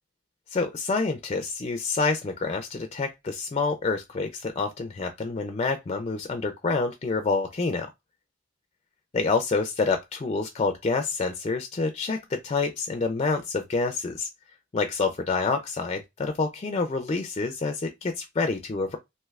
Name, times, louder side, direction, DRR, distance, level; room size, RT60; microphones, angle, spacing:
voice 1, 0.5-7.9 9.1-14.3 14.7-19.0, left 4 dB, 30° left, 0.3 m, -27 dB
3.1 x 2.8 x 2.3 m
head